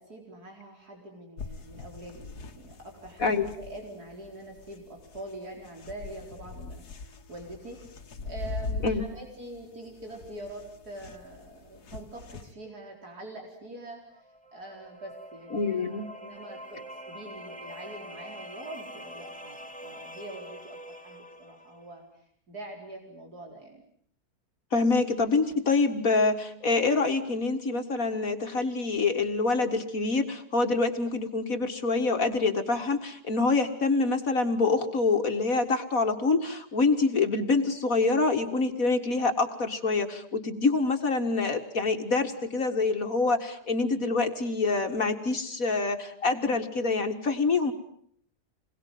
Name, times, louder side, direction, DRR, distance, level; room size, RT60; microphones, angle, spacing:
voice 1, 0.0-23.8, right 1 dB, 75° right, 1 dB, 5.2 m, -44 dB
sound 1, 1.4-12.5, left 4 dB, 80° left, 2.2 m, -42 dB
voice 2, 3.2-3.5 8.8-9.1 15.5-16.1 24.7-47.7, left 3 dB, 60° left, 6 dB, 2.3 m, -26 dB
sound 2, 14.1-21.9, equal, 5° left, 2.9 m, -45 dB
28.0 x 22.0 x 9.3 m, 0.65 s
omnidirectional pair, 1.7 m